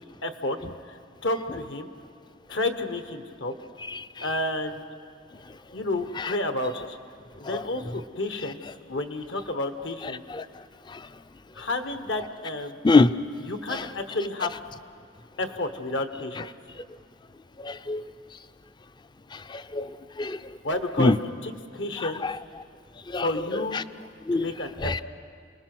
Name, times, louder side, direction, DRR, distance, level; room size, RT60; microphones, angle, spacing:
voice 1, 0.2-0.6 0.9-1.9 2.5-3.5 4.2-4.8 5.7-7.0 7.4-8.6 8.9-10.2 11.5-12.8 13.5-14.5 15.4-16.5 20.6-21.1 21.4-22.2 23.1-23.8 24.3-25.0, left 2 dB, 70° left, 8 dB, 1.3 m, -30 dB
voice 2, 3.9-4.2 6.2-6.3 7.4-7.6 10.3-10.4 10.9-11.0 12.8-13.1 13.7-13.8 17.6-18.0 19.3-19.9 20.2-20.4 21.0-21.2 22.0-22.4 23.1-23.8 24.3-24.4 24.8-25.0, left 3 dB, 25° left, 14 dB, 0.5 m, -24 dB
29.0 x 20.0 x 6.2 m, 2.2 s
head